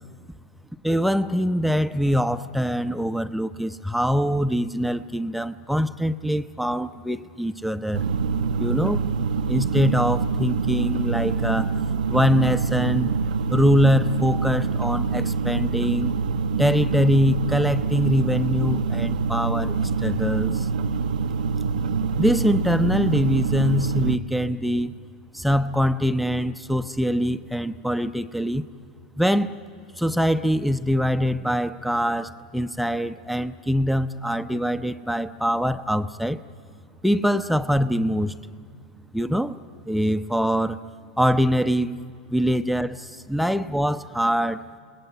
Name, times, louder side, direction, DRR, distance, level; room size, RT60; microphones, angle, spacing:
voice 1, 0.8-8.1 8.6-9.0 9.5-11.8 12.1-13.1 13.5-16.2 16.6-20.7 22.2-24.9 25.3-28.7 29.2-29.6 30.0-36.4 37.0-38.3 39.1-39.6 39.9-40.8 41.2-44.6, equal, ahead, 10 dB, 0.6 m, -23 dB
sound 1, 7.9-24.2, right 5 dB, 75° right, 0.6 m, -25 dB
27.5 x 19.0 x 9.3 m, 2.2 s
figure-of-eight pair, 90°, 4 cm